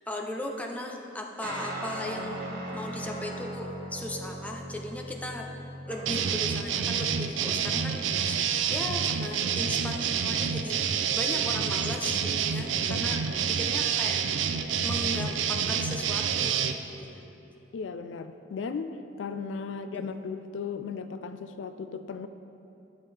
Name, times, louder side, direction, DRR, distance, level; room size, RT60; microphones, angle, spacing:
voice 1, 0.1-2.4 2.7-5.5 5.9-13.2 13.5-14.2 14.8-17.3 19.9-20.1, left 1 dB, 10° left, 1 dB, 0.6 m, -37 dB
sound 1, 1.4-6.6, right 1 dB, 55° right, 1.3 m, -38 dB
sound 2, 6.1-16.7, right 7 dB, 90° right, 0.4 m, -28 dB
voice 2, 17.7-22.3, left 5 dB, 75° left, 10 dB, 0.4 m, -36 dB
10.5 x 7.3 x 3.4 m, 2.8 s
head